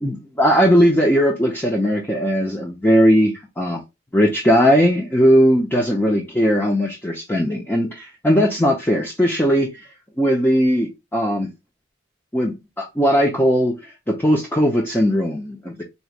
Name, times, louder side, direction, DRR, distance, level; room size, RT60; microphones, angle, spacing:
voice 1, 0.0-3.8 4.1-9.7 10.2-11.5 12.3-13.8 14.1-15.8, equal, 10° left, 0.7 m, -18 dB
4.2 x 3.2 x 2.3 m
head